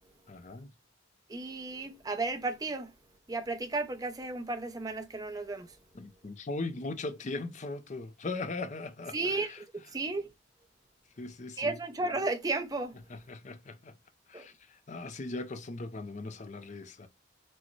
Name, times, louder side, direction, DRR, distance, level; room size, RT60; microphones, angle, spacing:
voice 1, 0.3-0.7 5.9-9.6 11.2-11.8 13.1-13.9 14.3-17.1, left 3 dB, 40° left, 0.5 m, -39 dB
voice 2, 1.3-2.9 3.3-5.7 9.1-10.3 11.6-13.0 14.3-14.5, right 3 dB, 20° right, 0.6 m, -34 dB
6.2 x 2.1 x 3.1 m
head